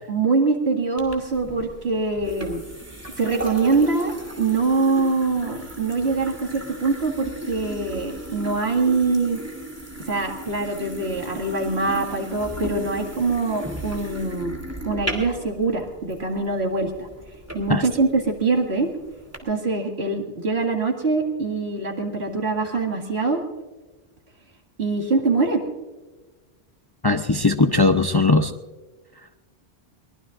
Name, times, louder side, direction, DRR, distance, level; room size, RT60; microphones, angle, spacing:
voice 1, 0.1-2.6 3.2-4.1 4.4-9.4 10.1-14.6 14.8-17.1 17.5-18.9 19.4-23.4 24.8-25.6, right 3 dB, 75° right, 2 dB, 2.4 m, -23 dB
sound 1, 1.0-19.4, right 1 dB, 15° right, 2.7 m, -36 dB
voice 2, 27.0-28.5, left 3 dB, 25° left, 6 dB, 0.6 m, -19 dB
23.0 x 20.0 x 2.5 m, 1.2 s
omnidirectional pair, 1.1 m